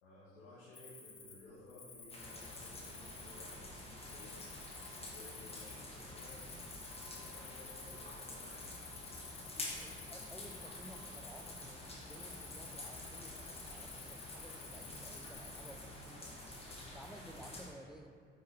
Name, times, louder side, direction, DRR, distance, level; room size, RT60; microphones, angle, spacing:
voice 1, 0.0-4.4 4.9-6.5 7.0-8.7, left 2 dB, 75° left, -10 dB, 1.7 m, -57 dB
Cricket, 0.7-16.1, left 4 dB, 35° left, 1.5 m, -52 dB
sound 1, 2.1-17.7, left 1 dB, 15° left, 1.7 m, -49 dB
voice 2, 8.6-9.1 9.5-16.3 16.8-18.2, equal, ahead, 5 dB, 0.5 m, -55 dB
8.9 x 4.9 x 3.4 m, 2.1 s
figure-of-eight pair, 55°, 34 cm